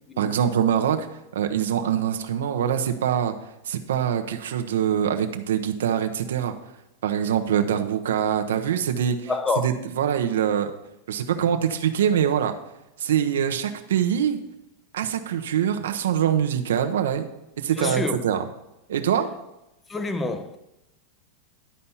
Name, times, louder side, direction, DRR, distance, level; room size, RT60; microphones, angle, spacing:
voice 1, 0.2-1.1 1.3-3.3 3.7-6.5 7.0-9.3 9.6-10.7 11.1-12.5 13.0-14.4 14.9-17.2 17.6-18.5 18.9-19.3, right 9 dB, 85° right, 0.8 m, -24 dB
voice 2, 9.3-9.7 17.8-18.2 19.9-20.6, left 3 dB, 15° left, 0.7 m, -27 dB
11.5 x 4.3 x 5.6 m
supercardioid pair, 130°, 0 cm